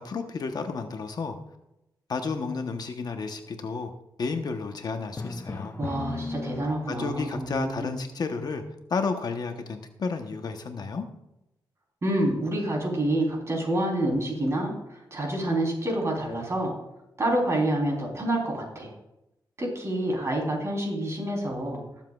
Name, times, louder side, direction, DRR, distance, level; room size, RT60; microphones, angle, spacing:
voice 1, 0.0-1.4 2.1-3.9 4.2-5.8 6.9-8.6 8.9-11.1, left 4 dB, 55° left, 6 dB, 1.0 m, -31 dB
Drum, 5.2-7.2, left 3 dB, 25° left, 0.6 m, -35 dB
voice 2, 5.8-7.9 12.0-16.7 17.2-18.9 19.6-21.8, right 1 dB, 35° right, -1 dB, 3.6 m, -28 dB
20.5 x 7.3 x 2.4 m, 0.89 s
wide cardioid pair, 110°, 8 cm